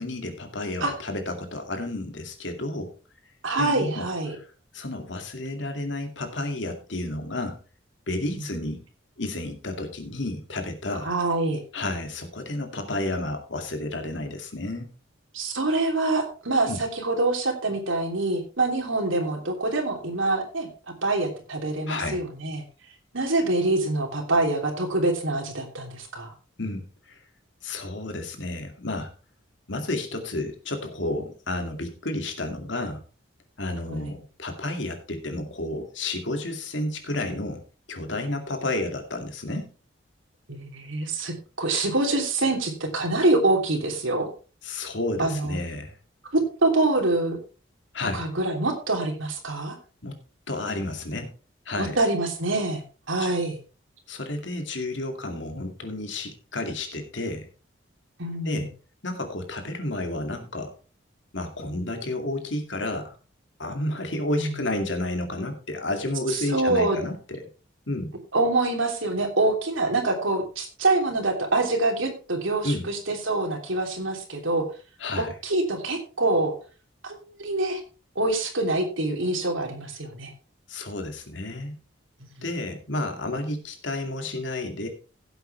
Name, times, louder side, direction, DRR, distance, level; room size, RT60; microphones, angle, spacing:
voice 1, 0.0-2.9 3.6-4.1 4.3-4.4 4.7-7.6 8.1-8.8 9.2-11.1 11.7-14.9 16.7-16.8 21.9-22.2 26.6-27.2 27.6-29.1 29.7-33.0 33.6-37.6 37.9-39.7 44.6-46.0 47.9-48.3 50.0-50.2 50.5-51.3 51.7-52.0 53.2-53.3 54.1-57.5 58.4-58.7 59.0-60.7 61.3-63.2 63.6-67.4 67.9-68.1 72.6-72.9 75.0-75.3 80.7-81.8 82.4-84.9, left 2 dB, 70° left, 5 dB, 2.4 m, -31 dB
voice 2, 3.4-4.4 11.0-11.6 15.3-20.7 21.0-22.6 23.1-26.3 33.9-34.1 40.5-44.3 45.2-45.6 46.3-47.4 48.1-49.8 51.8-53.6 58.2-58.7 64.4-64.6 66.3-67.0 68.3-74.6 75.2-76.5 77.0-77.8 78.1-80.3, right 2 dB, 85° right, 2 dB, 3.1 m, -25 dB
16.0 x 8.1 x 3.4 m, 0.35 s
head